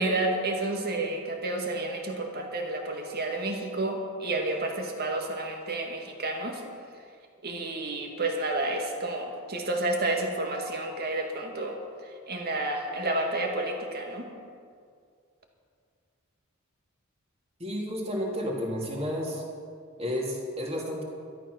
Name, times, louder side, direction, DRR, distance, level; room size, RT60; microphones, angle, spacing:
voice 1, 0.0-6.6 7.4-11.8 12.3-14.3, right 2 dB, 45° right, 2 dB, 1.9 m, -30 dB
voice 2, 17.6-19.4 20.0-21.0, equal, 30° right, -2 dB, 2.7 m, -31 dB
12.5 x 12.0 x 6.3 m, 2.2 s
head